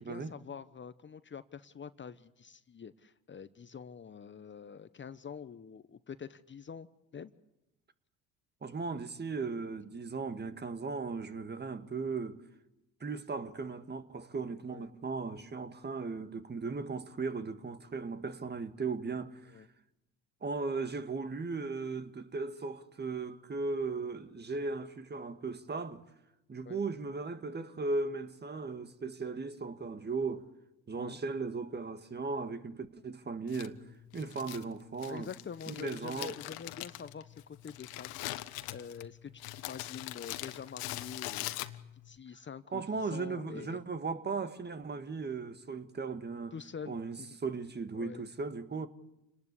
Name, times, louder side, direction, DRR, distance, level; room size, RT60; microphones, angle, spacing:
voice 1, 0.0-6.9 7.1-7.3 14.7-14.9 19.5-19.7 26.6-26.8 31.0-31.2 35.1-41.7 42.0-43.8 46.5-47.4 47.9-48.2, left 6 dB, 30° left, 1.1 m, -46 dB
voice 2, 8.6-12.4 13.0-19.7 20.4-26.0 26.5-30.5 30.9-33.8 34.1-35.3 35.7-36.3 42.7-46.5 46.9-48.9, right 4 dB, 25° right, 1.8 m, -37 dB
Crumpling crinkling, 33.5-42.1, left 17 dB, 65° left, 1.4 m, -42 dB
28.5 x 19.5 x 8.4 m
hypercardioid pair, 65°, 38 cm